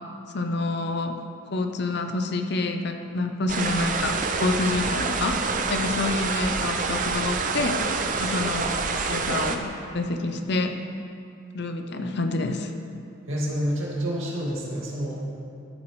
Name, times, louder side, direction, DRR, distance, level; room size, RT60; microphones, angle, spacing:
voice 1, 0.3-1.1 1.5-7.8 8.2-8.7 9.1-10.8 11.5-12.7, left 2 dB, 50° left, 6 dB, 0.6 m, -27 dB
sound 1, 3.5-9.6, right 4 dB, 40° right, 0.5 m, -27 dB
voice 2, 13.3-15.3, equal, 70° right, -5 dB, 2.2 m, -28 dB
13.0 x 8.3 x 3.2 m, 2.5 s
head